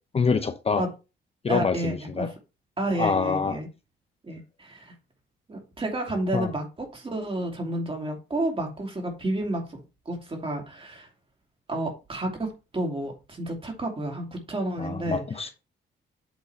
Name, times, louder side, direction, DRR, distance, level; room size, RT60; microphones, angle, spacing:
voice 1, 0.1-0.8 1.4-2.3 3.0-3.6 6.3-6.5 14.8-15.5, left 5 dB, 30° left, 0.7 m, -26 dB
voice 2, 1.5-2.3 2.8-3.7 4.2-4.9 5.5-9.8 10.1-11.1 11.7-15.2, right 1 dB, 30° right, 2.7 m, -30 dB
8.2 x 3.7 x 4.4 m
cardioid pair, 90°, 20 cm